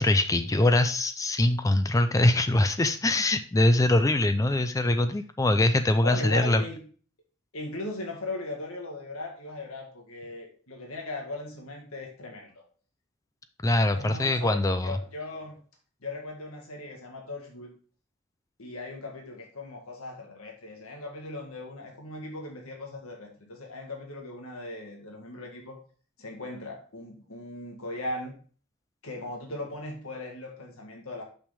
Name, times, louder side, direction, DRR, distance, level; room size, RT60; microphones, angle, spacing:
voice 1, 0.0-6.6 13.6-15.0, left 1 dB, 15° left, 9 dB, 0.4 m, -23 dB
voice 2, 6.0-6.8 7.5-12.5 13.9-15.6 16.0-17.7 18.6-25.8 26.2-28.3 29.0-31.2, left 2 dB, 85° left, 1 dB, 1.7 m, -38 dB
6.3 x 5.9 x 3.4 m, 0.41 s
head